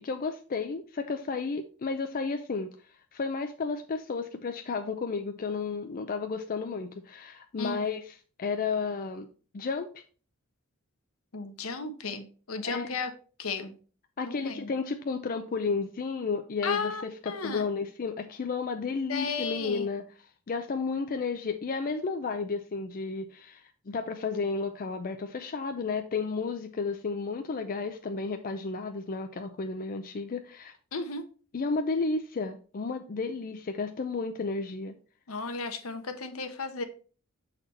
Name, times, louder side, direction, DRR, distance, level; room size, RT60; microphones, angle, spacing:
voice 1, 0.0-2.7 3.1-9.3 9.5-10.0 12.6-12.9 14.2-20.0 20.5-30.7 31.5-34.9, left 4 dB, 40° left, 6 dB, 0.5 m, -32 dB
voice 2, 11.3-13.1 13.4-13.7 14.2-14.7 16.6-17.7 19.1-19.9 30.9-31.2 35.3-36.8, left 4 dB, 75° left, 7 dB, 1.0 m, -34 dB
6.8 x 4.1 x 4.1 m, 0.39 s
head